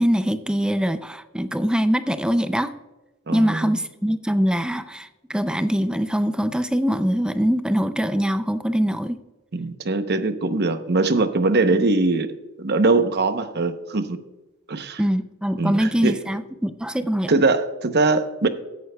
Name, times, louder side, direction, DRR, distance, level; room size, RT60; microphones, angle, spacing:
voice 1, 0.0-2.7 3.3-9.2 11.7-11.8 15.0-17.3, equal, 5° right, 11 dB, 0.4 m, -23 dB
voice 2, 3.3-3.8 9.5-14.2 14.7-15.0 15.6-16.2 17.3-18.5, right 3 dB, 50° right, 10 dB, 0.8 m, -22 dB
16.0 x 9.2 x 2.3 m, 1.1 s
head